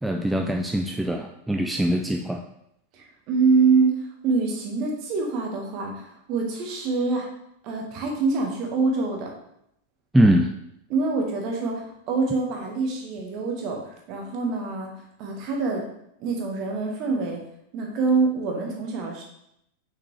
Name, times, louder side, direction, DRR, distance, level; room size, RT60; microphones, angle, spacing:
voice 1, 0.0-2.4 10.1-10.5, right 1 dB, 5° right, 2 dB, 0.4 m, -22 dB
voice 2, 2.9-7.3 7.6-9.3 10.9-14.9 15.2-15.8 16.2-17.4 17.7-19.2, right 4 dB, 40° right, 1 dB, 1.5 m, -25 dB
5.9 x 5.9 x 3.2 m, 0.78 s
figure-of-eight pair, 90°, 0 cm